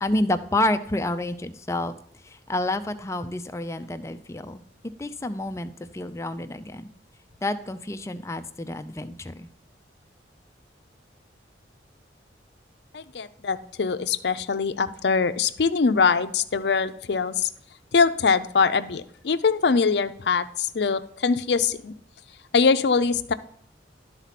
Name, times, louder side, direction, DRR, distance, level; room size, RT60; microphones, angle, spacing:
voice 1, 0.0-1.9 2.2-4.6 5.0-6.9 7.4-9.5, left 1 dB, 15° left, 9 dB, 0.4 m, -29 dB
voice 2, 12.9-17.5 17.9-21.9 22.5-23.3, left 5 dB, 65° left, 11 dB, 0.5 m, -23 dB
12.0 x 4.1 x 5.8 m, 0.66 s
head